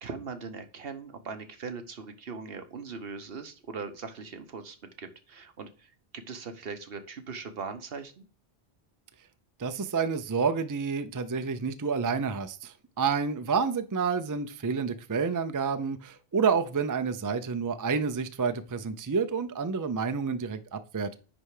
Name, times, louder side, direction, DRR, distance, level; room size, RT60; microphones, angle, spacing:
voice 1, 0.0-8.2, right 5 dB, 70° right, 8 dB, 1.2 m, -40 dB
voice 2, 9.6-21.2, right 5 dB, 30° right, 10 dB, 0.4 m, -29 dB
9.9 x 3.3 x 4.8 m, 0.35 s
omnidirectional pair, 1.0 m